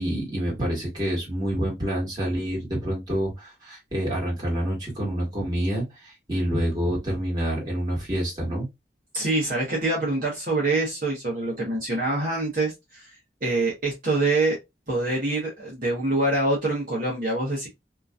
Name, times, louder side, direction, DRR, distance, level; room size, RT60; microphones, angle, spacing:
voice 1, 0.0-8.7, equal, 25° right, 1.6 m, -27 dB
voice 2, 9.1-13.1 13.4-14.6 14.9-17.7, right 2 dB, 50° right, 1.0 m, -25 dB
2.9 x 2.5 x 2.3 m
head